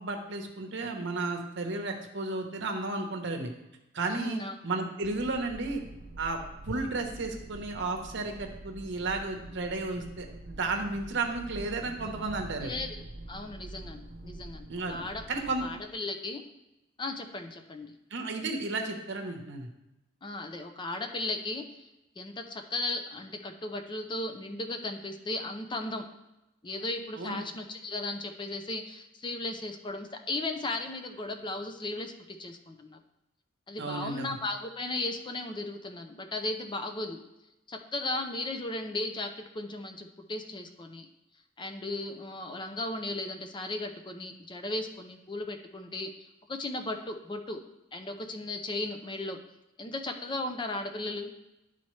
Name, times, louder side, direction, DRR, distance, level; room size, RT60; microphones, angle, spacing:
voice 1, 0.0-3.5 3.9-5.8 6.2-12.8 14.7-15.0 15.3-15.7 18.1-19.7 27.2-27.4 33.8-34.4, right 3 dB, 60° right, 3 dB, 1.0 m, -33 dB
voice 2, 4.1-4.5 12.6-13.0 13.3-15.2 15.6-16.4 17.0-17.9 20.2-21.7 22.2-26.1 26.6-33.0 33.7-37.2 37.7-41.1 41.6-47.6 47.9-49.4 49.8-51.3, left 2 dB, 25° left, 6 dB, 0.5 m, -36 dB
sound 1, 5.0-15.9, right 1 dB, 45° right, 0.6 m, -46 dB
11.5 x 4.2 x 3.2 m, 0.94 s
head